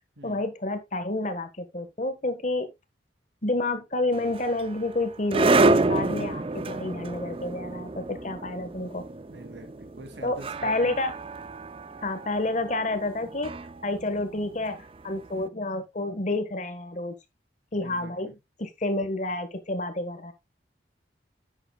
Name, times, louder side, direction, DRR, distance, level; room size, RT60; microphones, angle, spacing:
voice 1, 0.2-2.7 3.4-9.1 10.2-11.2 12.0-13.6 13.8-17.1 17.7-18.3 18.6-20.3, left 2 dB, 40° left, 1.4 m, -29 dB
sound 1, 4.1-15.2, right 3 dB, 30° right, 0.4 m, -28 dB
voice 2, 9.3-11.0 17.8-18.3, equal, 65° right, 2.5 m, -45 dB
10.5 x 8.1 x 2.3 m
head